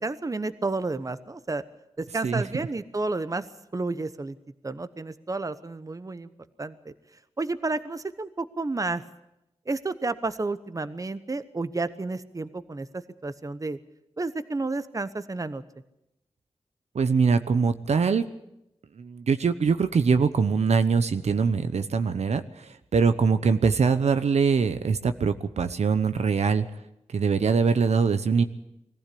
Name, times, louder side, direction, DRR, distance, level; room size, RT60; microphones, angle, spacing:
voice 1, 0.0-1.6 2.0-3.5 3.7-4.4 4.6-6.3 6.6-6.9 7.4-9.0 9.7-13.8 14.2-15.6, right 3 dB, 30° right, 13 dB, 1.0 m, -31 dB
voice 2, 2.2-2.6 16.9-18.3 19.0-26.6 27.1-28.4, right 5 dB, 85° right, 10 dB, 0.9 m, -23 dB
21.0 x 15.0 x 8.5 m, 0.86 s
wide cardioid pair, 75°, 11 cm